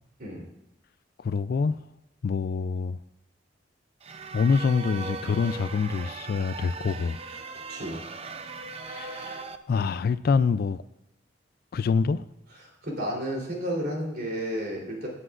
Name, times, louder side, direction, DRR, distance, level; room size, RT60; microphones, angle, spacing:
voice 1, 1.2-1.8 2.2-3.0 4.3-7.2 8.8-10.8 11.7-12.2, left 5 dB, 55° left, 0.3 m, -26 dB
sound 1, 4.0-9.6, right 4 dB, 35° right, 0.6 m, -39 dB
voice 2, 7.7-8.0 12.8-15.1, equal, 55° right, 3.4 m, -31 dB
17.0 x 9.9 x 2.5 m
head